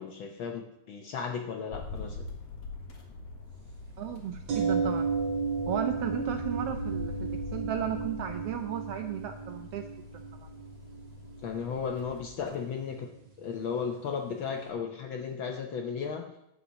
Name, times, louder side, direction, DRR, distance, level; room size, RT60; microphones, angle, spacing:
voice 1, 0.0-2.2 11.4-13.1 13.4-16.3, left 6 dB, 80° left, 4 dB, 1.1 m, -35 dB
sound 1, 1.7-12.6, left 4 dB, 60° left, 2.6 m, -43 dB
voice 2, 4.0-5.1 5.7-9.9 10.1-10.2, right 10 dB, 80° right, 7 dB, 1.3 m, -34 dB
sound 2, 4.5-14.4 14.7-14.8, right 5 dB, 65° right, 3.0 m, -35 dB
11.5 x 5.7 x 7.4 m, 0.83 s
omnidirectional pair, 3.3 m